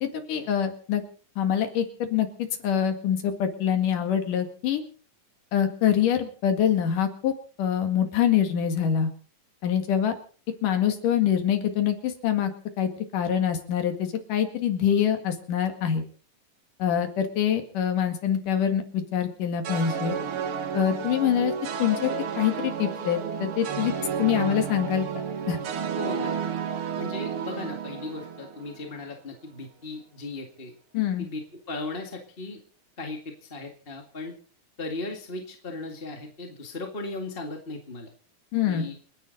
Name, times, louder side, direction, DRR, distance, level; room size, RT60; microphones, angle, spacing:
voice 1, 0.0-1.0 1.4-4.8 5.5-7.3 7.6-9.1 9.6-10.1 10.6-12.5 12.8-16.0 16.8-20.2 20.7-21.5 21.8-22.1 22.4-23.9 24.2-25.1 25.5-25.6 30.9-31.3 38.5-38.9, left 9 dB, 70° left, 6 dB, 3.5 m, -25 dB
sound 1, 19.6-29.0, right 7 dB, 55° right, 1.7 m, -32 dB
voice 2, 25.9-26.3 27.0-30.7 31.2-32.6 33.0-34.3 34.8-38.1 38.7-38.9, left 2 dB, 25° left, 3 dB, 1.5 m, -37 dB
29.0 x 10.0 x 4.1 m, 0.42 s
omnidirectional pair, 3.9 m